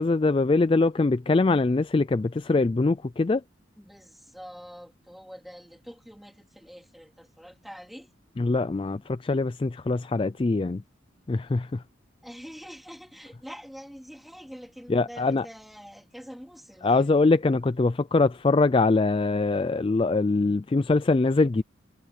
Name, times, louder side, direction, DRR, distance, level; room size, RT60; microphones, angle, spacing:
voice 1, 0.0-3.4 8.4-10.8 11.3-11.8 14.9-15.4 16.8-21.6, left 3 dB, 25° left, 0.3 m, -23 dB
voice 2, 3.8-8.1 12.2-17.5, equal, ahead, 3.4 m, -45 dB
head